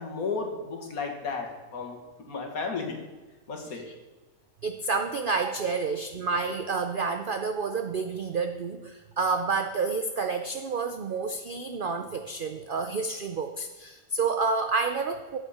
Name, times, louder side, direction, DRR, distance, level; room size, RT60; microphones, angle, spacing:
voice 1, 0.0-2.0 2.3-3.0 3.5-3.8, left 4 dB, 65° left, 2 dB, 2.0 m, -33 dB
voice 2, 4.6-15.4, right 4 dB, 70° right, 6 dB, 0.5 m, -29 dB
14.0 x 8.1 x 4.2 m, 1.2 s
omnidirectional pair, 1.6 m